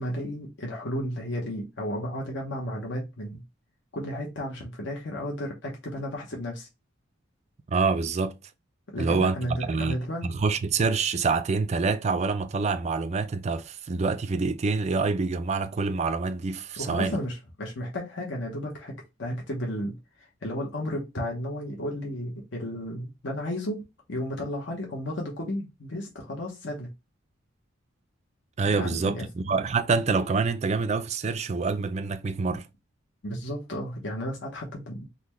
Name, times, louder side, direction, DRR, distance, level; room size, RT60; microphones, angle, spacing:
voice 1, 0.0-3.4 3.9-6.7 8.9-10.4 16.8-26.9 28.6-29.3 33.2-35.1, left 1 dB, 60° left, 0.9 m, -33 dB
voice 2, 7.7-8.3 9.0-9.4 9.6-17.2 28.6-32.6, right 4 dB, 35° right, 0.3 m, -26 dB
3.9 x 2.2 x 3.0 m
head